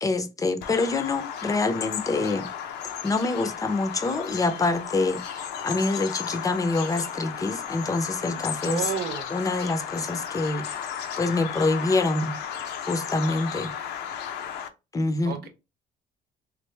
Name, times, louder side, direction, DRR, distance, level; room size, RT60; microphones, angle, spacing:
voice 1, 0.0-2.5 2.8-8.9 9.3-10.9 11.2-12.3 12.9-13.7 14.9-15.4, left 3 dB, 20° left, 0.6 m, -26 dB
Bird vocalization bird call bird song, 0.6-14.7, left 8 dB, 75° left, 0.6 m, -34 dB
voice 2, 8.6-9.3 15.2-15.5, right 7 dB, 70° right, 0.9 m, -31 dB
3.3 x 2.5 x 3.2 m
cardioid pair, 110°, 17 cm